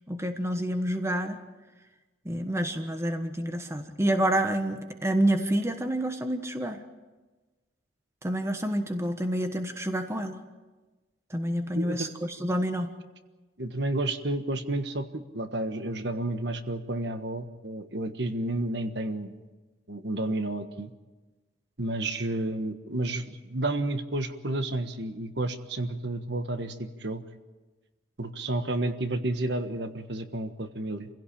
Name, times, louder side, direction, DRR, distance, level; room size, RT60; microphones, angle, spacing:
voice 1, 0.1-1.4 2.2-6.8 8.2-10.4 11.3-12.9, right 1 dB, 15° right, 7 dB, 1.3 m, -28 dB
voice 2, 11.7-12.1 13.6-19.4 19.9-20.9 21.8-27.2 28.2-31.1, right 2 dB, 65° right, 8 dB, 1.4 m, -31 dB
27.0 x 16.5 x 8.7 m, 1.2 s
head